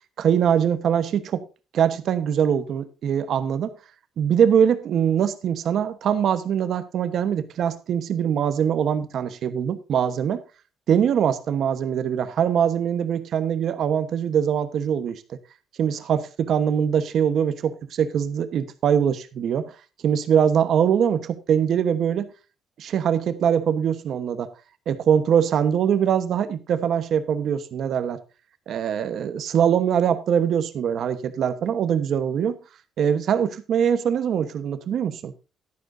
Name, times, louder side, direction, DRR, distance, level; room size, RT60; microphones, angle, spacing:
voice 1, 0.2-1.4 1.7-3.7 4.2-10.4 10.9-15.4 15.8-19.7 20.0-22.3 22.8-24.5 24.9-28.2 28.7-32.6 33.0-35.3, right 8 dB, 50° right, 1.1 m, -22 dB
12.0 x 11.5 x 2.6 m
cardioid pair, 170°, 0 cm